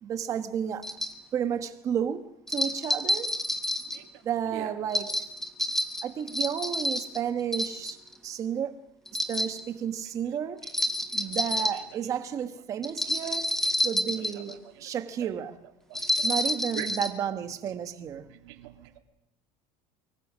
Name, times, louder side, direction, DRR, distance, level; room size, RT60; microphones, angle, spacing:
voice 1, 0.0-0.9 1.3-3.3 4.2-5.3 6.0-8.0 8.2-8.8 9.3-10.6 11.1-13.5 13.8-15.6 16.2-18.3, right 8 dB, 25° right, 1.2 m, -32 dB
sound 1, 0.8-1.1 2.5-4.0 4.9-7.2 7.5-8.1 9.1-9.6 10.6-11.8 12.8-14.5 15.9-17.1, left 1 dB, 5° left, 1.3 m, -28 dB
voice 2, 3.9-4.8 10.6-10.7 11.2-11.3 11.7-11.8 13.2-13.4 14.0-14.9 15.2-15.3 15.9-16.4 16.7-16.9 18.2-19.0, right 16 dB, 80° right, 2.5 m, -44 dB
24.5 x 23.0 x 6.2 m
cardioid pair, 180°, 12 cm